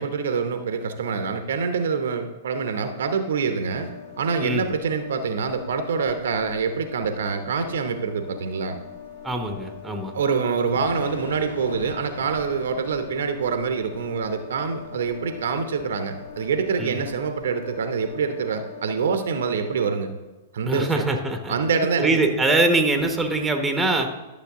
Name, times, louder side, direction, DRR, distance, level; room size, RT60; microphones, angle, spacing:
voice 1, 0.0-3.9 4.2-8.8 10.1-20.1 20.5-21.0 21.5-22.2, right 5 dB, 65° right, 8 dB, 0.8 m, -25 dB
sound 1, 3.6-19.9, left 8 dB, 50° left, 2.0 m, -42 dB
Thunder / Rain, 4.7-18.2, left 2 dB, 75° left, 0.8 m, -44 dB
voice 2, 9.2-10.1 16.8-17.0 20.6-21.5 22.0-24.1, right 2 dB, 10° right, 5 dB, 1.1 m, -23 dB
11.5 x 6.7 x 3.7 m, 1.1 s
figure-of-eight pair, 105°, 0 cm